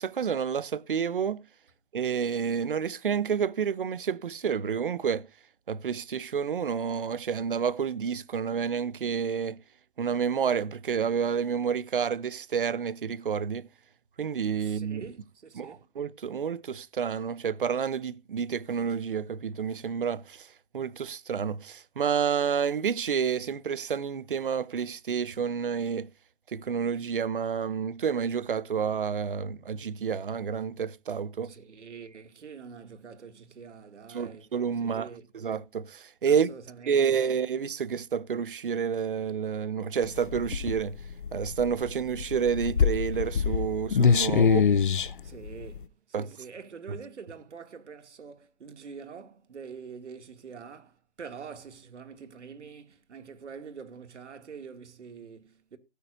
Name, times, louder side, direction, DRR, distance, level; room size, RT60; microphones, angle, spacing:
voice 1, 0.0-1.4 1.9-5.2 5.7-9.6 10.0-13.6 14.2-15.0 15.6-20.5 20.7-26.1 26.5-31.5 34.1-35.1 35.3-36.5 36.9-41.0 41.3-44.7 46.1-46.3, right 7 dB, 50° right, 0.7 m, -29 dB
voice 2, 14.6-15.9 31.4-34.5 34.8-35.3 36.3-37.4 45.2-55.8, right 6 dB, 80° right, 2.4 m, -45 dB
sound 1, 40.0-45.8, left 6 dB, 45° left, 0.5 m, -25 dB
18.0 x 9.4 x 2.6 m
hypercardioid pair, 180°, 35 cm